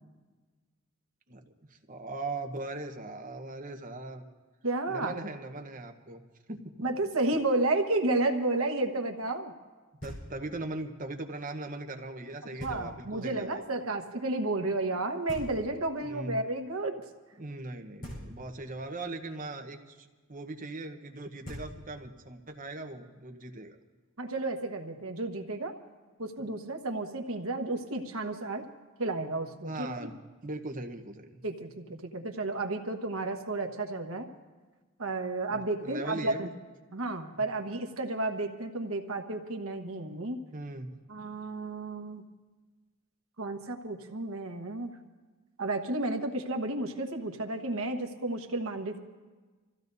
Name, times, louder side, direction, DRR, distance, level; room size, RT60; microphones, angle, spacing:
voice 1, 1.7-4.2 4.9-6.2 6.5-6.7 7.0-7.1 10.0-13.8 16.0-16.4 17.4-23.8 26.4-26.5 29.6-30.1 30.4-31.4 35.5-36.5 37.4-37.5 40.5-41.0, right 2 dB, 40° right, 5 dB, 1.0 m, -40 dB
voice 2, 4.6-5.2 6.8-9.5 12.4-17.0 24.2-25.7 26.2-28.6 29.0-30.1 31.4-34.3 35.0-36.5 36.9-40.4 41.1-42.2 43.4-44.9 45.6-49.0, right 2 dB, 75° right, 4 dB, 1.3 m, -32 dB
Knock, 10.0-10.7 12.6-13.2 15.3-16.1 18.0-18.8 21.1-21.2 21.4-22.2, equal, 40° left, 4.5 m, -44 dB
26.5 x 15.5 x 2.7 m, 1.3 s
head